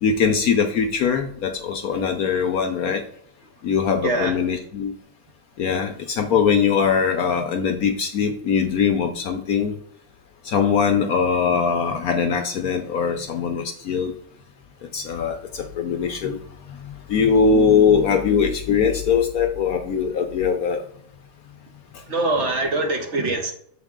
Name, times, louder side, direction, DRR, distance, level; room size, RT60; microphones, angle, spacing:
voice 1, 0.0-3.0 3.6-4.9 5.6-9.8 10.4-14.1 14.9-16.4 16.7-20.8, left 6 dB, 65° left, 5 dB, 1.0 m, -21 dB
voice 2, 4.0-4.3 22.1-23.5, right 2 dB, 45° right, 3 dB, 1.1 m, -23 dB
7.1 x 4.1 x 3.6 m, 0.62 s
omnidirectional pair, 2.0 m